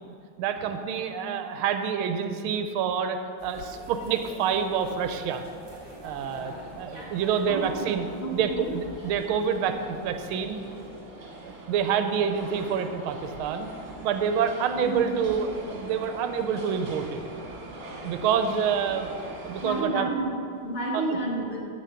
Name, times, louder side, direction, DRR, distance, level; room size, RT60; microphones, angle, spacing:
voice 1, 0.0-5.4 6.0-10.6 11.4-13.7 14.0-17.2 18.0-19.1 19.4-20.1 20.9-21.2, right 7 dB, 80° right, 7 dB, 1.5 m, -27 dB
sound 1, 3.4-10.9, equal, 15° right, 1.2 m, -46 dB
sound 2, 5.7-19.8, right 2 dB, 45° right, 1.7 m, -43 dB
voice 2, 8.2-8.7 14.7-15.1 19.6-21.6, right 1 dB, 30° left, -2 dB, 1.4 m, -30 dB
8.3 x 7.7 x 5.7 m, 2.4 s
omnidirectional pair, 2.3 m